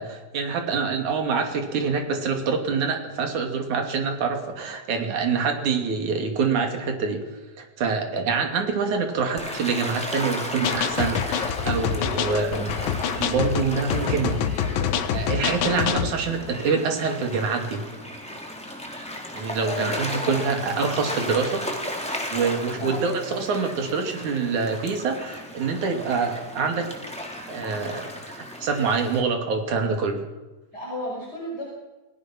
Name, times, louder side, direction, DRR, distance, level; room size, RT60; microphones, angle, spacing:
voice 1, 0.0-7.3 7.6-12.8 13.2-14.4 15.1-17.9 19.3-21.7 22.3-26.9 27.5-28.3 28.6-30.2, right 5 dB, 60° right, 4 dB, 3.9 m, -26 dB
Gull seagull / Waves surf, 9.4-29.2, left 1 dB, ahead, 3.3 m, -35 dB
sound 1, 10.6-16.1, left 8 dB, 80° left, 2.9 m, -26 dB
voice 2, 19.6-20.3 22.8-23.1 30.7-31.6, left 1 dB, 25° left, -3 dB, 5.9 m, -33 dB
28.0 x 18.5 x 6.1 m, 1.1 s
omnidirectional pair, 4.1 m